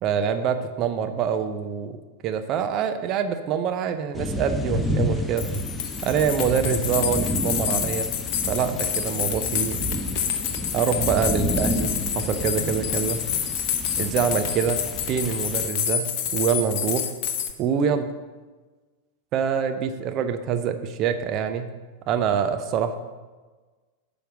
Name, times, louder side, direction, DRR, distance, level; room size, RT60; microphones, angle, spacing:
voice 1, 0.0-2.0 2.2-5.5 6.0-8.2 8.5-9.8 10.7-13.2 14.0-14.8 15.1-17.1 17.6-18.1 19.3-21.7 22.1-23.0, right 7 dB, 35° right, 8 dB, 0.6 m, -25 dB
sound 1, 4.1-15.7, left 1 dB, 10° left, 0.7 m, -30 dB
sound 2, 5.1-5.2 5.4-17.5, left 8 dB, 45° left, 0.8 m, -28 dB
9.0 x 5.2 x 6.1 m, 1.3 s
figure-of-eight pair, 90°, 0 cm